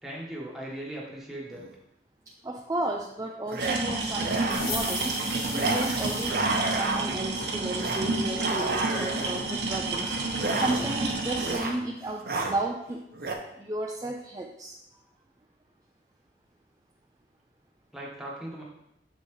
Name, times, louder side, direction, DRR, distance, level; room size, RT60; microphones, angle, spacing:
voice 1, 0.0-1.6 17.9-18.6, right 1 dB, ahead, -4 dB, 1.3 m, -38 dB
sound 1, 1.5-1.7 3.5-3.8 4.1-4.8 5.5-5.9 6.2-7.3 7.8-8.0 8.4-9.4 10.3-11.1 11.4-11.8 12.1-12.6 13.1-13.3, right 3 dB, 55° right, 0.8 m, -30 dB
voice 2, 2.4-10.2 10.5-13.0 13.6-14.8, right 1 dB, 20° right, 1 dB, 0.4 m, -33 dB
sound 2, 3.6-11.6, right 3 dB, 85° right, 1.0 m, -30 dB
sound 3, 4.5-6.3, left 3 dB, 65° left, 1.5 m, -35 dB
7.2 x 5.3 x 3.2 m, 0.82 s
head